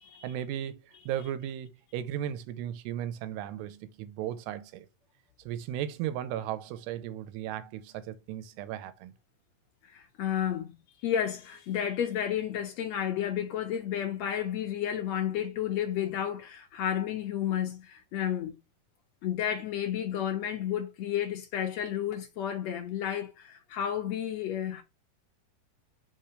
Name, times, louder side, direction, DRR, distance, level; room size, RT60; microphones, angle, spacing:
voice 1, 0.2-4.9 5.5-9.1, right 11 dB, 90° right, 2.8 m, -36 dB
voice 2, 9.8-10.7 11.0-18.6 19.2-24.8, left 10 dB, 80° left, 1.5 m, -31 dB
5.5 x 4.4 x 4.8 m
omnidirectional pair, 4.8 m